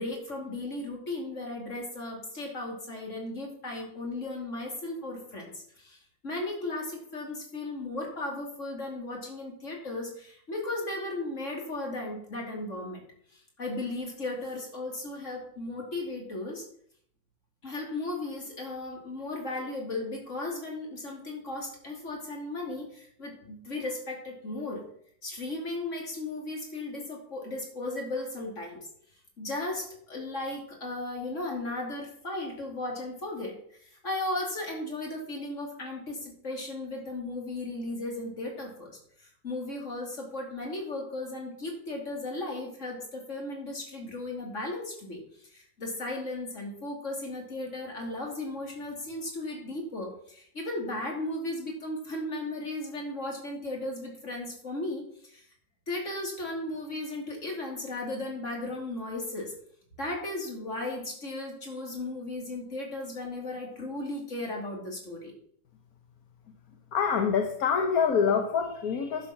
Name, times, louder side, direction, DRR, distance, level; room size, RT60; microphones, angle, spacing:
voice 1, 0.0-6.0 6.2-13.0 13.3-16.6 17.6-24.8 25.2-28.9 29.4-33.6 33.8-55.5 55.9-59.5 60.0-65.3, left 2 dB, 40° left, 0 dB, 3.2 m, -36 dB
voice 2, 66.9-69.3, left 6 dB, 55° left, 4 dB, 1.4 m, -26 dB
11.0 x 7.1 x 5.9 m, 0.64 s
omnidirectional pair, 2.0 m